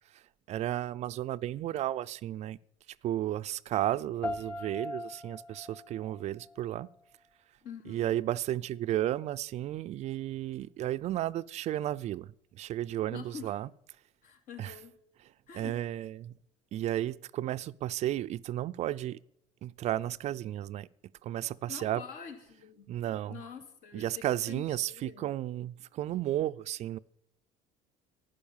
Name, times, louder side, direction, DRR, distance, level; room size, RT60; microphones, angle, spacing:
voice 1, 0.5-2.6 3.0-6.9 7.9-12.3 12.5-13.7 14.6-14.7 15.5-16.3 16.7-19.2 19.6-20.9 21.2-22.0 22.9-23.4 23.9-27.0, right 13 dB, 50° right, 0.4 m, -33 dB
sound 1, 4.2-7.2, left 2 dB, 10° left, 1.2 m, -41 dB
voice 2, 7.6-8.1 13.1-13.5 14.2-14.9 15.5-15.8 21.7-25.4, left 7 dB, 70° left, 2.5 m, -46 dB
11.5 x 10.0 x 7.2 m
cardioid pair, 120°, 15 cm